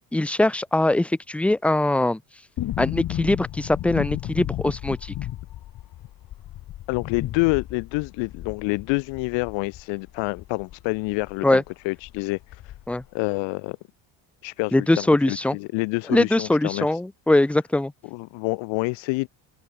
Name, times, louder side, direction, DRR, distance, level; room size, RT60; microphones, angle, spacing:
voice 1, 0.1-2.2 2.8-5.1 11.4-11.6 12.9-13.0 14.7-15.6 16.1-17.9, left 1 dB, 5° left, 0.4 m, -21 dB
sound 1, 2.6-11.4 11.7-11.8 12.0-13.1 13.3-13.4, left 13 dB, 50° left, 7.3 m, -34 dB
voice 2, 6.9-12.7 13.1-13.8 14.4-17.0 18.1-19.3, left 27 dB, 80° left, 1.8 m, -27 dB
cardioid pair, 155°, 44 cm